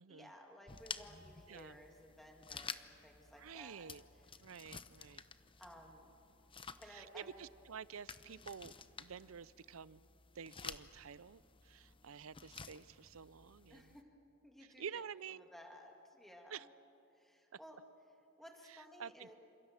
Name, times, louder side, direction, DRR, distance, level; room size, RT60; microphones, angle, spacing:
voice 1, 0.1-3.9 5.6-6.1 6.8-7.4 13.7-14.1 14.4-15.0 15.3-16.7 17.1-17.8 18.4-19.4, equal, ahead, 1 dB, 2.0 m, -57 dB
sound 1, 0.7-14.0, left 5 dB, 25° left, 0.8 m, -52 dB
voice 2, 3.4-4.0 4.4-5.2 6.9-8.7 9.0-10.0 10.3-13.9 14.8-15.5 16.5-16.7 18.7-19.3, right 7 dB, 80° right, 19 dB, 0.6 m, -50 dB
28.5 x 27.0 x 7.2 m, 2.8 s
head